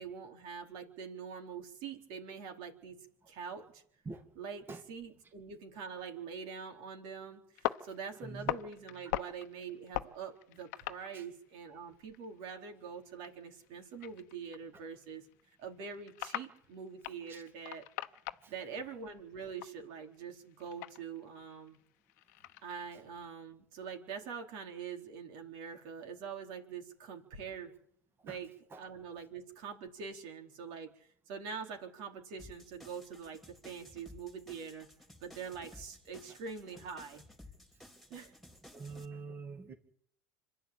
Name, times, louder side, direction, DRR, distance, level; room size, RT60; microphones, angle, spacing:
voice 1, 0.0-3.0 3.3-3.8 4.3-15.3 15.6-17.9 18.5-21.8 22.6-27.7 28.2-28.5 28.8-34.9 35.2-37.2 38.1-38.3, right 6 dB, 65° right, 4.2 m, -44 dB
sound 1, 7.5-11.6 11.9-18.7 19.0-22.9, left 16 dB, 75° left, 1.0 m, -42 dB
voice 2, 8.2-8.5 11.1-11.2 17.3-17.4 18.4-18.5 28.3-28.4 28.7-28.8 38.7-39.7, right 4 dB, 25° right, 2.3 m, -44 dB
sound 2, 32.4-39.0, left 1 dB, ahead, 3.6 m, -56 dB
26.0 x 11.5 x 8.9 m
supercardioid pair, 105°, 9 cm